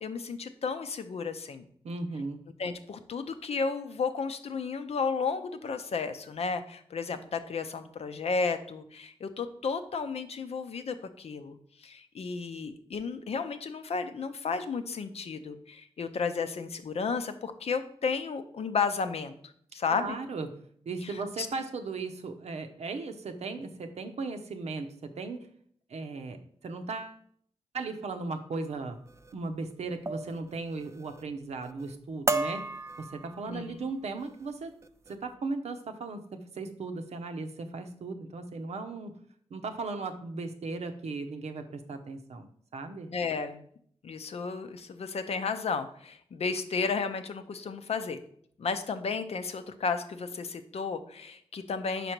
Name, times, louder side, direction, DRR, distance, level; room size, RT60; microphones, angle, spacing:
voice 1, 0.0-1.7 2.6-20.2 21.0-21.5 33.5-33.7 43.1-43.6 44.0-48.2 48.6-52.1, left 5 dB, 70° left, 9 dB, 0.6 m, -33 dB
voice 2, 1.8-2.4 19.9-20.5 20.9-25.5 25.9-26.4 26.6-27.2 27.7-29.0 29.3-32.7 33.0-34.7 35.1-39.1 39.5-43.1, right 3 dB, 80° right, 7 dB, 0.7 m, -37 dB
sound 1, 29.1-29.3 30.1-30.4 30.7-31.2 31.6-31.9 32.3-33.6 34.2-34.4 34.8-35.1, right 2 dB, 25° right, 0.5 m, -34 dB
5.3 x 4.9 x 4.4 m, 0.62 s
wide cardioid pair, 80°, 11 cm